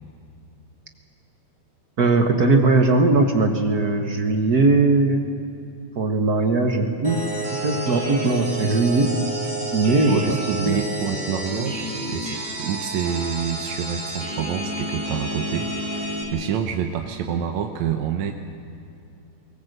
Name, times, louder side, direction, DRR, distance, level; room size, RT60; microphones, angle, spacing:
voice 1, 2.0-5.3 5.9-7.2 7.5-9.1 9.7-10.2 10.6-10.8, right 3 dB, 50° right, 4 dB, 1.2 m, -19 dB
sound 1, 7.0-16.2, right 2 dB, 15° right, 4.4 m, -30 dB
voice 2, 10.1-18.3, right 8 dB, 75° right, 4 dB, 2.3 m, -27 dB
22.5 x 19.5 x 7.9 m, 2.6 s
omnidirectional pair, 3.3 m